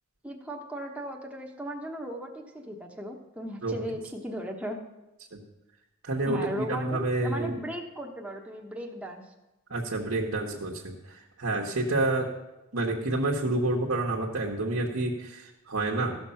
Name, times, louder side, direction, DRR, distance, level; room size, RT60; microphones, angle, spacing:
voice 1, 0.2-4.8 6.3-9.2, equal, 5° right, 0 dB, 1.0 m, -37 dB
voice 2, 6.0-7.6 9.7-12.3 12.7-16.2, right 2 dB, 75° right, -2 dB, 1.3 m, -29 dB
15.0 x 6.3 x 5.7 m, 0.99 s
head